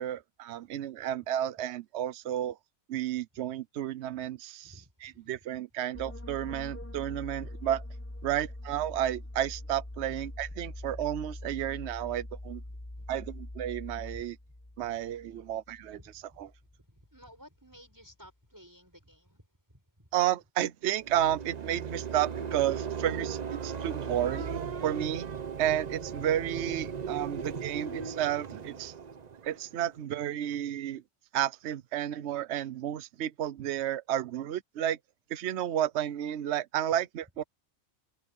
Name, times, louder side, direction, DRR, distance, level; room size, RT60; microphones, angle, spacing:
voice 1, 0.0-2.6 2.9-7.8 8.2-12.6 13.1-14.4 14.8-16.5 20.1-25.3 25.6-28.9 29.4-31.0 31.3-35.0 35.3-37.4, right 11 dB, 75° right, 1.0 m, -32 dB
voice 2, 4.6-5.1 13.0-13.1 16.0-16.4 16.8-19.4 19.7-20.1, equal, 15° right, 7.5 m, -55 dB
sound 1, 5.9-17.3 17.6-17.9, left 1 dB, 10° left, 1.3 m, -43 dB
sound 2, 20.9-30.0, right 6 dB, 40° right, 0.8 m, -37 dB
omnidirectional pair, 1.2 m